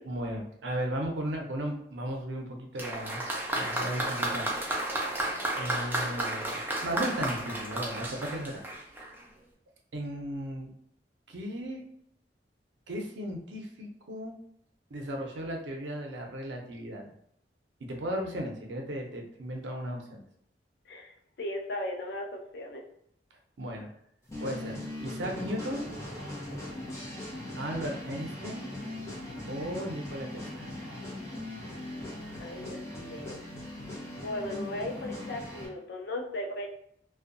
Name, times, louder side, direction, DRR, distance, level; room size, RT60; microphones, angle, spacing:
voice 1, 0.0-4.5 4.9-5.1 5.5-8.6 9.9-10.7 11.3-11.8 12.9-14.3 14.9-17.1 17.8-20.2 23.6-23.9 24.4-25.9 27.2-28.7 29.5-30.7, equal, 90° right, 1 dB, 0.6 m, -36 dB
Applause, 2.8-9.2, right 1 dB, 10° right, 0.5 m, -32 dB
voice 2, 21.4-22.8 32.4-33.4 34.1-36.7, left 1 dB, 65° left, 2 dB, 0.5 m, -37 dB
sound 1, 24.3-35.7, left 1 dB, 15° left, 0.9 m, -40 dB
2.6 x 2.2 x 2.5 m, 0.70 s
head